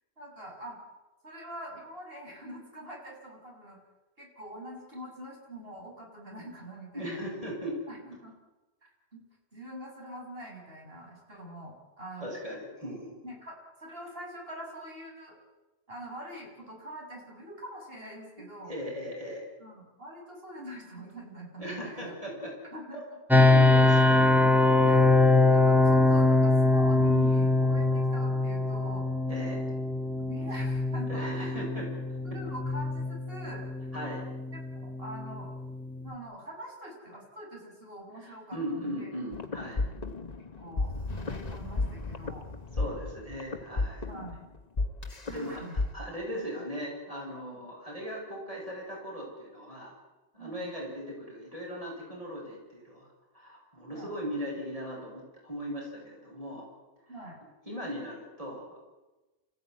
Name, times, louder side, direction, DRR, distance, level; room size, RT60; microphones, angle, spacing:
voice 1, 0.2-0.8 1.2-3.8 4.2-7.2 7.9-8.3 9.1-9.2 9.5-12.3 13.2-15.4 15.9-18.8 19.6-22.2 22.7-23.2 24.0-24.1 24.8-29.1 29.9-31.6 32.2-33.7 34.5-35.5 36.0-39.1 40.4-42.5 44.1-44.5 45.3-45.8 47.5-47.6 50.4-50.7 53.9-54.1 57.1-57.4, right 1 dB, 60° right, -1 dB, 7.3 m, -44 dB
voice 2, 6.9-7.8 12.2-13.1 18.7-19.4 21.6-22.6 22.9-23.0 23.5-24.2 29.3-29.6 31.1-31.9 33.9-34.2 38.2-39.8 42.7-44.0 45.3-45.6 45.9-49.9 50.3-53.1 53.3-56.7 57.7-58.9, equal, 30° right, -2 dB, 8.1 m, -38 dB
sound 1, 23.3-36.1, left 2 dB, ahead, 1.3 m, -23 dB
sound 2, 39.3-45.9, left 3 dB, 40° left, 1.4 m, -33 dB
29.0 x 16.0 x 9.6 m, 1.1 s
omnidirectional pair, 1.1 m